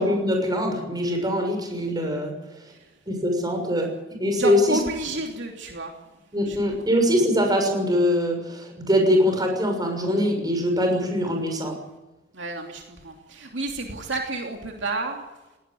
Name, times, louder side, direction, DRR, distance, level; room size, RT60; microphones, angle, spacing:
voice 1, 0.0-2.3 3.1-3.9 4.2-4.8 6.3-11.7, equal, 20° right, 4 dB, 6.4 m, -23 dB
voice 2, 4.3-5.9 6.5-6.9 12.3-15.2, right 2 dB, 65° right, 2 dB, 3.0 m, -30 dB
19.5 x 18.0 x 9.2 m, 1.0 s
head